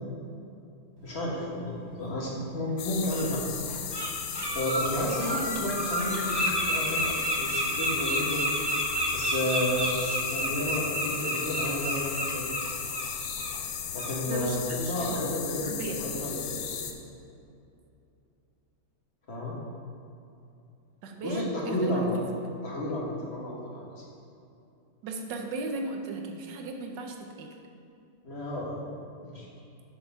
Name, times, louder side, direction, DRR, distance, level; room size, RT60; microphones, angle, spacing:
voice 1, 1.0-3.4 4.5-6.4 6.7-8.4 9.1-12.5 13.9-16.6 19.3-19.6 21.2-22.2 22.6-24.0 28.2-28.7 29.2-29.5, left 1 dB, 35° left, -4 dB, 1.5 m, -32 dB
Bird, 2.3-2.4 3.1-3.2 3.7-4.1 4.3-13.1 13.4-13.6 14.0-14.1, right 1 dB, 25° right, 0.5 m, -30 dB
sound 1, 2.8-16.9, left 8 dB, 75° left, 1.5 m, -36 dB
voice 2, 5.3-5.7 14.2-15.2 15.6-16.0 21.0-22.1 25.0-27.6, right 3 dB, 65° right, 3 dB, 1.4 m, -37 dB
10.5 x 6.8 x 3.5 m, 2.7 s
omnidirectional pair, 2.3 m